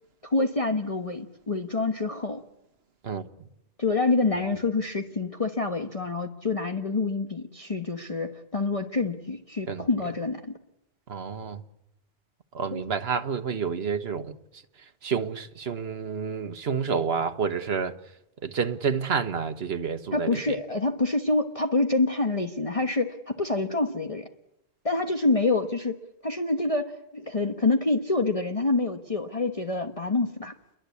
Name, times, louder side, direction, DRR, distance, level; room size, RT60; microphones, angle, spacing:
voice 1, 0.2-2.4 3.8-10.6 12.7-12.8 20.1-24.3 24.8-26.0 26.2-30.5, left 3 dB, 30° left, 1.3 m, -27 dB
voice 2, 11.1-11.6 12.5-14.3 15.0-17.9 18.4-20.6, right 6 dB, 65° right, 1.5 m, -29 dB
29.5 x 22.5 x 8.4 m
omnidirectional pair, 1.2 m